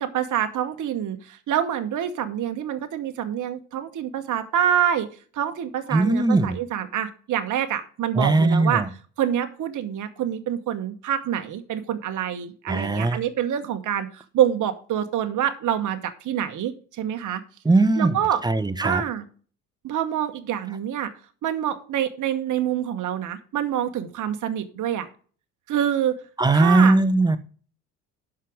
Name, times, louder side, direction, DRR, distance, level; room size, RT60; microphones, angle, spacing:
voice 1, 0.0-5.1 5.3-8.8 9.2-17.4 18.0-18.4 18.8-19.3 19.8-21.1 21.4-25.1 25.7-26.1 26.5-27.0, right 10 dB, 45° right, 8 dB, 1.1 m, -26 dB
voice 2, 5.9-6.6 8.2-8.9 12.7-13.2 17.6-18.1 18.4-19.0 26.4-27.4, right 2 dB, 10° right, 13 dB, 0.9 m, -19 dB
11.5 x 4.9 x 4.9 m, 0.42 s
hypercardioid pair, 60°, 44 cm